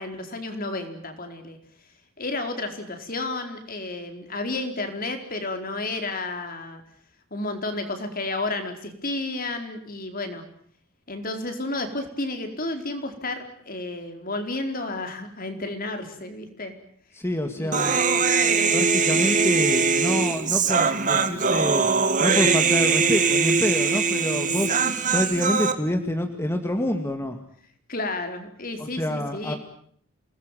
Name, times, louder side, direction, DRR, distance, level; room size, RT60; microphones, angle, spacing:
voice 1, 0.0-1.6 2.2-6.8 7.3-10.4 11.1-16.7 17.6-17.9 18.6-18.8 23.9-24.0 24.8-24.9 27.9-29.6, left 2 dB, 45° left, 6 dB, 4.6 m, -32 dB
voice 2, 17.1-18.0 18.7-21.9 22.2-24.8 25.1-27.4 28.8-29.5, left 1 dB, 10° left, 5 dB, 2.1 m, -27 dB
Human voice, 17.7-25.7, right 5 dB, 40° right, 2.2 m, -21 dB
28.0 x 20.0 x 9.2 m, 0.62 s
head